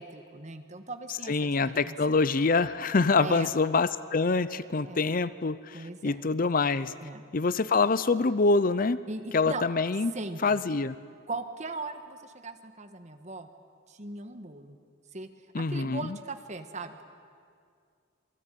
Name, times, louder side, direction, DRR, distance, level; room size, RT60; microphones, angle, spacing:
voice 1, 0.0-1.9 3.2-3.5 4.8-5.0 5.7-6.2 7.0-7.2 9.1-9.6 10.1-10.6 11.3-13.5 13.9-14.8 15.1-15.3 15.6-17.0, right 3 dB, 35° right, 8 dB, 1.5 m, -39 dB
voice 2, 1.3-6.9 7.3-9.0 9.3-10.1 10.4-10.9 15.5-16.2, left 4 dB, 40° left, 16 dB, 0.6 m, -25 dB
27.5 x 20.0 x 9.2 m, 2.2 s
head